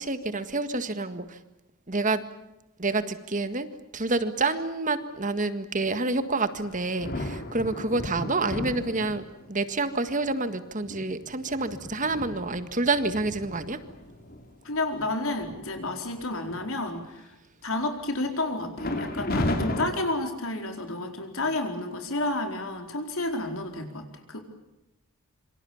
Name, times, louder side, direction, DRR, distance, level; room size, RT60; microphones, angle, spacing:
voice 1, 0.0-1.4 1.9-2.2 2.8-3.7 3.9-13.8, right 3 dB, 35° right, 11 dB, 1.8 m, -28 dB
sound 1, 6.5-9.5 10.2-10.3 10.8-14.4 14.9-15.1 15.4-15.8 16.2-17.0 18.8-19.9, left 1 dB, 45° left, 3.2 m, -34 dB
voice 2, 14.6-17.4 17.6-24.4, left 2 dB, 70° left, 5 dB, 4.5 m, -31 dB
27.0 x 25.5 x 7.2 m, 0.92 s
head